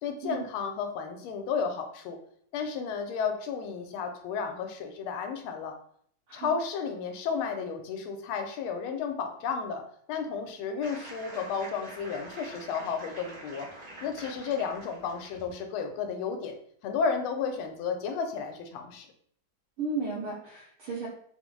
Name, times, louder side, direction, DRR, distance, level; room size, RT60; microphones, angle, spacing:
voice 1, 0.0-2.2 2.5-5.7 6.3-9.8 10.1-13.7 14.0-16.6 16.8-19.1, left 6 dB, 90° left, 5 dB, 1.4 m, -32 dB
sound 1, 10.8-15.5, right 1 dB, 50° right, 1.5 m, -46 dB
voice 2, 19.8-21.1, right 3 dB, 85° right, -6 dB, 1.6 m, -34 dB
3.8 x 2.0 x 3.0 m, 0.63 s
omnidirectional pair, 2.3 m